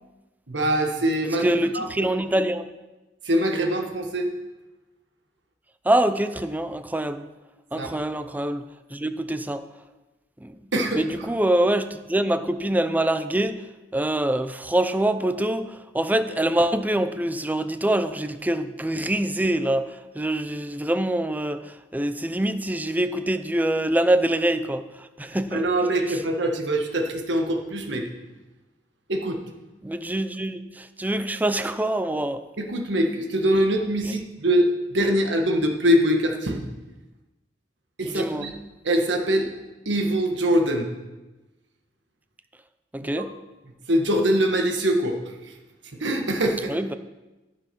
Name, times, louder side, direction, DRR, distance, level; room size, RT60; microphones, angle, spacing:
voice 1, 0.5-2.1 3.2-4.3 7.8-7.9 10.7-11.3 25.5-28.1 29.1-29.4 32.6-36.6 38.0-38.6 38.8-39.5 39.8-40.9 43.0-43.2 43.9-45.2 46.0-46.7, equal, 75° right, 3 dB, 1.5 m, -23 dB
voice 2, 1.4-2.6 5.9-7.2 7.7-8.6 8.9-9.6 10.4-10.5 11.0-13.5 13.9-19.9 20.2-21.6 21.9-24.8 25.2-25.6 29.8-32.4 38.1-38.5 42.9-43.3 46.7-46.9, right 1 dB, 10° right, 11 dB, 0.5 m, -24 dB
15.0 x 6.1 x 5.3 m, 1.1 s
head